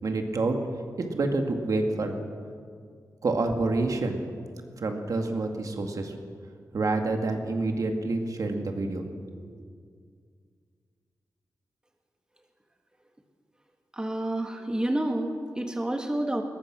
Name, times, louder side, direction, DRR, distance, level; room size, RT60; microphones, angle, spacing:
voice 1, 0.0-0.6 1.0-2.1 3.2-4.2 4.8-6.1 6.7-9.0, right 3 dB, 60° right, 4 dB, 2.0 m, -27 dB
voice 2, 13.9-16.4, right 1 dB, 10° right, 3 dB, 1.6 m, -29 dB
21.5 x 21.0 x 6.1 m, 2.1 s
wide cardioid pair, 160°, 7 cm